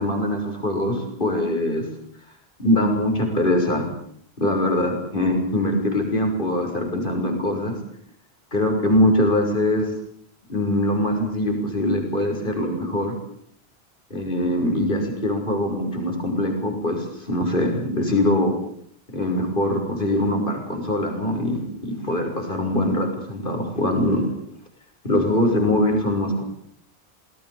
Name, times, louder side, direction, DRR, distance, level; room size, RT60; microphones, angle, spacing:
voice 1, 0.0-1.8 2.6-3.9 4.4-7.8 8.5-9.9 10.5-13.1 14.1-18.5 19.1-24.2 25.0-26.4, left 1 dB, 55° left, 3 dB, 6.6 m, -22 dB
27.5 x 20.5 x 7.1 m, 0.65 s
omnidirectional pair, 1.1 m